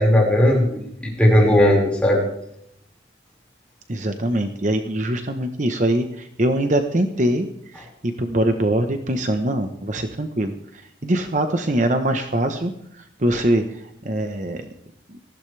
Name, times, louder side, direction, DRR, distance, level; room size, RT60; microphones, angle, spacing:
voice 1, 0.0-2.2, left 1 dB, 5° left, -2 dB, 5.1 m, -17 dB
voice 2, 3.9-14.7, right 1 dB, 40° right, 6 dB, 1.0 m, -23 dB
19.0 x 15.0 x 3.4 m, 0.76 s
head